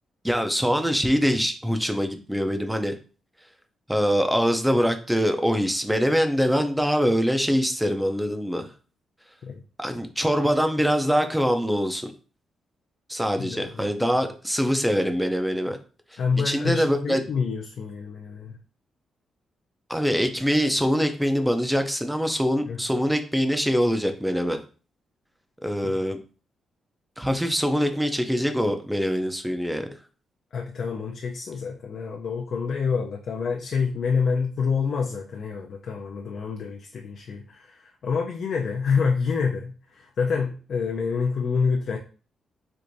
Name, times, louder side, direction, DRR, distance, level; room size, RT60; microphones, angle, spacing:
voice 1, 0.2-2.9 3.9-8.7 9.8-12.1 13.1-15.8 16.4-17.2 19.9-24.6 25.6-26.2 27.2-29.9, equal, 5° right, 6 dB, 0.5 m, -23 dB
voice 2, 13.4-14.0 16.2-18.6 22.7-22.8 25.8-26.0 30.5-42.0, left 5 dB, 55° left, 0 dB, 0.5 m, -27 dB
4.5 x 2.6 x 2.6 m, 0.37 s
cardioid pair, 140°, 0 cm